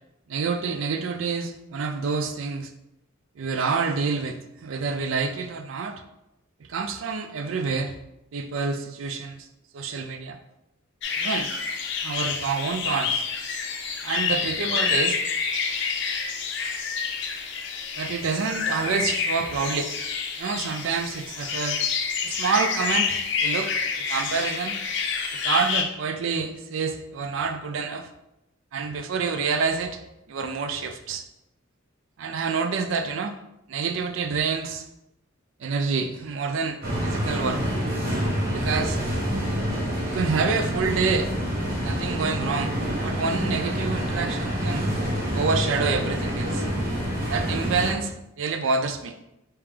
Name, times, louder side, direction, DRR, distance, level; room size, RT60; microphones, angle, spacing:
voice 1, 0.3-2.7 3.4-6.0 6.7-8.0 8.3-9.5 9.7-10.4 11.2-11.5 12.0-13.3 14.0-15.2 18.0-19.9 20.4-21.8 22.2-23.7 24.0-24.8 25.4-28.1 28.7-30.0 30.3-31.3 32.2-33.4 33.7-34.9 35.6-37.6 38.5-39.0 40.1-41.3 41.8-44.8 45.3-46.7 47.3-49.1, right 5 dB, 75° right, 7 dB, 0.4 m, -27 dB
sound 1, 11.0-25.8, left 6 dB, 60° left, 0.5 m, -28 dB
sound 2, 36.8-47.9, equal, 45° right, 1.1 m, -27 dB
3.5 x 3.0 x 3.3 m, 0.88 s
head